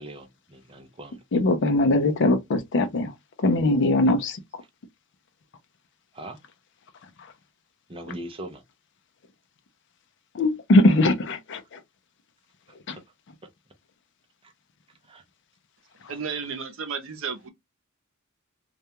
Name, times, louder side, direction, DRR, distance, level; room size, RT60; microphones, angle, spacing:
voice 1, 0.0-1.2 6.2-6.4 7.9-8.6 15.1-15.2, right 1 dB, 25° right, 0.5 m, -39 dB
voice 2, 1.3-3.1 3.4-4.4 10.3-11.6 12.9-13.0, left 2 dB, 60° left, 0.5 m, -21 dB
voice 3, 16.1-17.5, right 6 dB, 65° right, 0.6 m, -33 dB
2.3 x 2.2 x 2.8 m
head